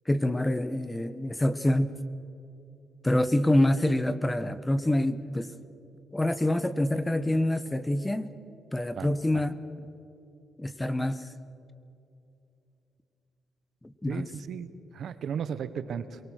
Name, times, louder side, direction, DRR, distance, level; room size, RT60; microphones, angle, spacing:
voice 1, 0.1-2.0 3.0-5.5 6.1-8.3 8.7-9.6 10.6-11.3 14.0-14.3, left 1 dB, 15° left, 14 dB, 1.0 m, -26 dB
voice 2, 8.9-9.4 14.1-14.7 14.9-16.2, right 7 dB, 65° right, 13 dB, 1.2 m, -35 dB
24.0 x 23.0 x 6.5 m, 2.8 s
cardioid pair, 90°, 0 cm